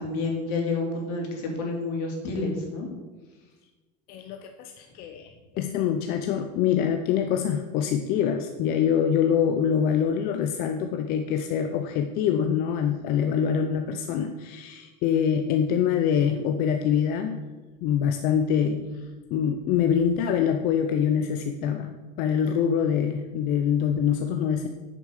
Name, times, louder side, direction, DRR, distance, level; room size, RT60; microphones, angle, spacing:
voice 1, 0.0-2.9, left 3 dB, 70° left, 1 dB, 2.9 m, -29 dB
voice 2, 4.1-17.4 17.8-19.0 19.3-24.7, left 8 dB, 45° left, 6 dB, 0.6 m, -25 dB
8.7 x 6.9 x 6.5 m, 1.3 s
cardioid pair, 160°, 21 cm